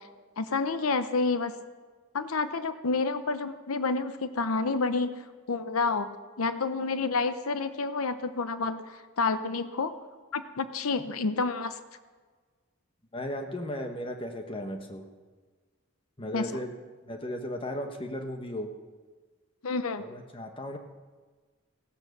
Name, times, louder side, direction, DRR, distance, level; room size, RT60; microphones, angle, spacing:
voice 1, 0.4-1.5 2.1-5.2 5.5-6.1 6.4-9.9 10.3-11.8 16.3-16.5 19.6-20.0, left 4 dB, 85° left, 11 dB, 0.8 m, -29 dB
voice 2, 13.1-15.0 16.2-16.7 17.0-18.7 20.0-20.8, left 1 dB, 25° left, 5 dB, 1.2 m, -35 dB
16.0 x 11.5 x 6.7 m, 1.4 s
head